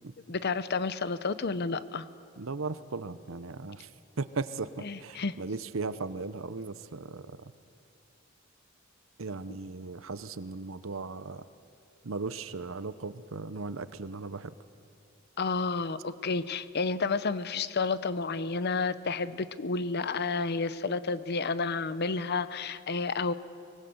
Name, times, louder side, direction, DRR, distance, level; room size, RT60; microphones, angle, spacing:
voice 1, 0.3-2.1 4.8-5.4 9.5-9.6 15.4-23.3, left 4 dB, 55° left, 14 dB, 0.8 m, -31 dB
voice 2, 2.4-3.8 4.2-4.7 5.0-7.2 9.2-11.4 12.1-14.4, right 3 dB, 80° right, 14 dB, 0.8 m, -37 dB
24.5 x 19.5 x 8.0 m, 2.5 s
head